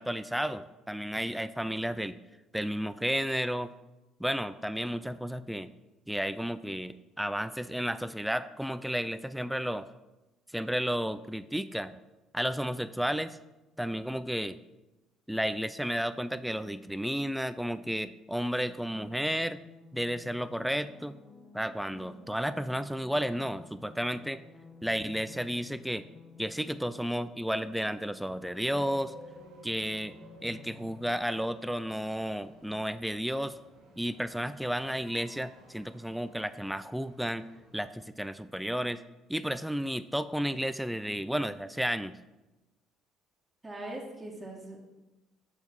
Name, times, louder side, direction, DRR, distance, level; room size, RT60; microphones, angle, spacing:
voice 1, 0.0-2.2 2.5-3.7 4.2-5.7 6.1-9.9 10.5-12.0 12.3-13.4 13.8-14.6 15.3-19.6 19.9-21.2 21.5-24.4 24.8-26.0 26.4-29.1 29.6-30.1 30.4-33.6 34.0-37.5 37.7-39.0 39.3-42.2, equal, 5° right, 13 dB, 0.3 m, -32 dB
sound 1, 19.1-31.1, left 4 dB, 30° left, 0.9 m, -53 dB
sound 2, 28.6-37.9, right 2 dB, 80° right, 1.9 m, -56 dB
voice 2, 43.6-44.8, right 1 dB, 20° right, -1 dB, 1.5 m, -41 dB
6.2 x 3.5 x 6.0 m, 1.0 s
hypercardioid pair, 65°, 0 cm